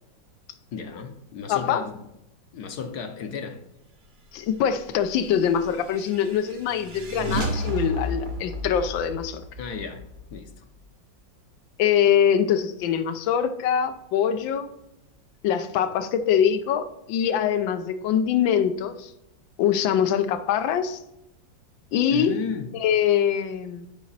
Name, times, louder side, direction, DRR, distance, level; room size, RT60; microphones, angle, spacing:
voice 1, 0.7-2.1 2.5-3.6 9.6-10.0 10.3-10.6 22.1-22.7, left 6 dB, 65° left, 1.2 m, -33 dB
voice 2, 1.5-1.8 4.3-9.4 11.8-14.7 15.4-19.1 19.6-21.0 21.9-22.3 22.8-23.9, left 8 dB, 85° left, 1.4 m, -23 dB
sound 1, 5.2-10.9, right 1 dB, 50° right, 0.5 m, -33 dB
7.2 x 5.2 x 3.9 m
omnidirectional pair, 2.0 m